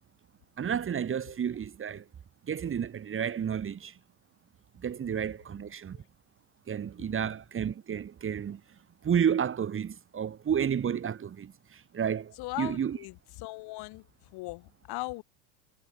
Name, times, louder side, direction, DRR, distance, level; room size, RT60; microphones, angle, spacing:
voice 1, 0.6-2.0 2.5-3.9 4.8-6.0 6.7-8.6 9.0-13.0, right 8 dB, 25° right, 3.0 m, -31 dB
voice 2, 12.4-14.0 14.3-15.2, left 23 dB, 50° left, 6.9 m, -39 dB
hypercardioid pair, 90°, 49 cm